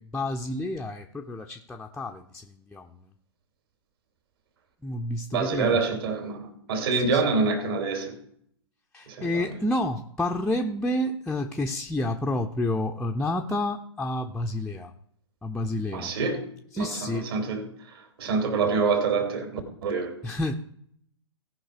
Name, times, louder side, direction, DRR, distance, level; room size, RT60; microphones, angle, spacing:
voice 1, 0.0-3.0 4.8-5.8 7.0-7.2 8.9-14.9 15.4-16.1 16.7-17.3 20.2-20.6, left 1 dB, 5° left, 0.7 m, -29 dB
voice 2, 5.3-8.2 9.1-9.5 15.9-16.4 16.8-20.2, right 4 dB, 55° right, 2.8 m, -27 dB
17.5 x 5.8 x 4.9 m
figure-of-eight pair, 115°, 15 cm